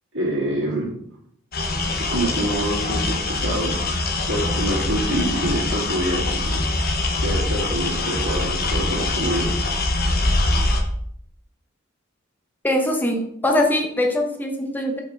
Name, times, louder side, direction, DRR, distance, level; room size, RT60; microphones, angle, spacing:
voice 1, 0.1-0.9 2.1-3.8 4.3-6.6 7.2-9.5, right 1 dB, 65° right, -5 dB, 2.3 m, -26 dB
sound 1, 1.5-10.8, left 2 dB, 50° left, 0.9 m, -23 dB
voice 2, 12.6-15.0, left 1 dB, 10° left, 2 dB, 0.9 m, -22 dB
5.5 x 4.4 x 4.0 m, 0.70 s
head